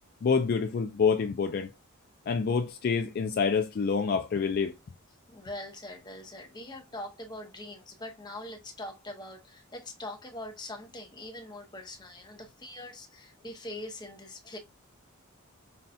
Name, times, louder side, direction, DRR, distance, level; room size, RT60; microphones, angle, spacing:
voice 1, 0.2-1.7 2.3-4.7, left 5 dB, 45° left, 0.3 m, -27 dB
voice 2, 5.3-14.6, left 1 dB, 20° left, 0.8 m, -42 dB
5.6 x 2.3 x 2.6 m
head